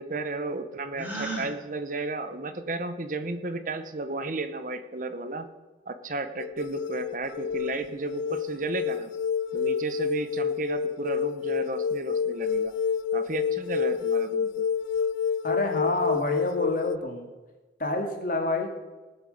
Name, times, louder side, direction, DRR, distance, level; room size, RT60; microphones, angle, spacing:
voice 1, 0.0-5.5 5.9-9.1 9.5-12.7 13.1-14.7, right 2 dB, 45° right, 10 dB, 0.9 m, -33 dB
Gasp, 0.9-1.5, right 2 dB, 10° right, 3.7 m, -33 dB
sound 1, 6.4-17.0, left 6 dB, 85° left, 0.3 m, -29 dB
voice 2, 15.4-17.3 17.8-18.7, left 2 dB, 50° left, 3 dB, 2.1 m, -28 dB
19.0 x 7.4 x 5.3 m, 1.2 s
head